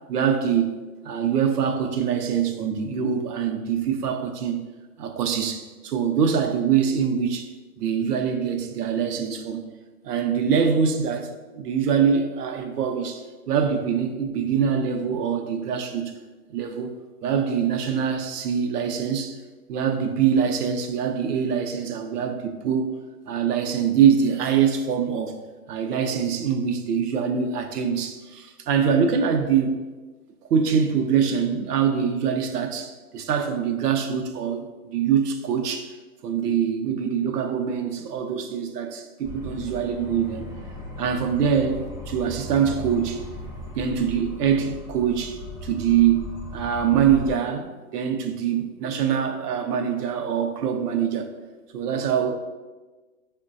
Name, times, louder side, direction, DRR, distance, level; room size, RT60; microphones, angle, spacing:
voice 1, 0.1-0.7 1.0-4.6 5.0-7.5 7.8-9.7 10.0-16.1 16.5-16.9 17.2-19.4 19.7-22.9 23.3-25.4 25.7-29.8 30.5-35.9 36.2-40.4 41.0-43.2 43.7-51.3 51.7-52.3, right 7 dB, 80° right, 0.6 m, -24 dB
sound 1, 39.2-47.3, left 1 dB, 30° right, 0.4 m, -38 dB
4.5 x 2.2 x 2.5 m
hypercardioid pair, 165°, 46 cm